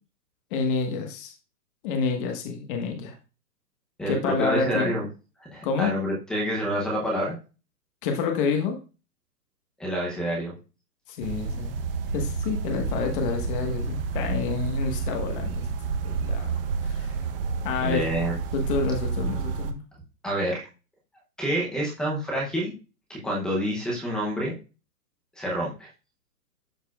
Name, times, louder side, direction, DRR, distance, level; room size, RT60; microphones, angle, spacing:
voice 1, 0.5-1.3 1.8-3.1 4.1-5.0 5.6-5.9 8.0-8.8 11.1-11.7 12.1-15.7 16.0-16.5 16.8-17.1 17.6-18.1 18.5-19.8, left 5 dB, 35° left, 4 dB, 1.2 m, -28 dB
voice 2, 4.0-5.0 5.5-7.4 9.8-10.5 17.8-18.4 20.2-20.6 21.4-22.7 23.1-24.5 25.4-25.9, equal, ahead, -2 dB, 0.5 m, -28 dB
sound 1, 11.2-19.7, right 4 dB, 35° right, 0.7 m, -30 dB
12.0 x 4.1 x 2.3 m, 0.32 s
hypercardioid pair, 155°, 47 cm